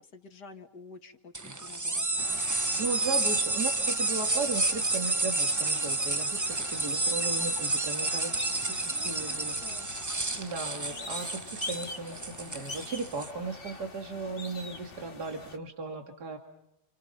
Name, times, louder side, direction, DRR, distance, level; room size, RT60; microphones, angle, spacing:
voice 1, 0.1-2.3 8.9-9.9, left 3 dB, 80° left, 6 dB, 2.6 m, -50 dB
sound 1, 1.3-13.3, right 2 dB, 20° right, 0.5 m, -30 dB
sound 2, 2.2-15.6, left 3 dB, 35° left, 2.0 m, -44 dB
voice 2, 2.8-9.5 10.4-16.4, right 4 dB, 70° right, 3 dB, 2.9 m, -36 dB
29.5 x 29.0 x 5.5 m, 0.87 s
omnidirectional pair, 1.8 m